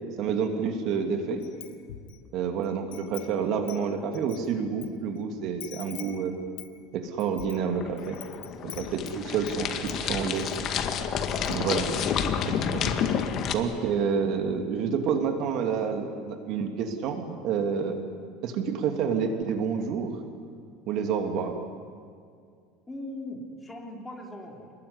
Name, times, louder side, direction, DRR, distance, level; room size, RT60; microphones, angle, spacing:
voice 1, 0.2-1.4 2.3-6.3 6.9-8.2 8.6-10.5 11.5-11.9 12.5-12.9 13.5-18.0 18.4-20.2 20.9-21.6, right 6 dB, 45° right, 5 dB, 2.6 m, -29 dB
Wind chime, 1.4-2.2 2.6-4.9 5.2-5.3 5.6-9.6 9.9-10.6 10.9-11.0 11.3-11.7, left 14 dB, 80° left, 2.1 m, -46 dB
sound 1, 7.6-13.5, left 7 dB, 35° left, 1.9 m, -29 dB
voice 2, 22.9-24.7, left 1 dB, 10° left, 1 dB, 3.4 m, -41 dB
28.5 x 21.0 x 9.8 m, 2.2 s
cardioid pair, 160°, 0 cm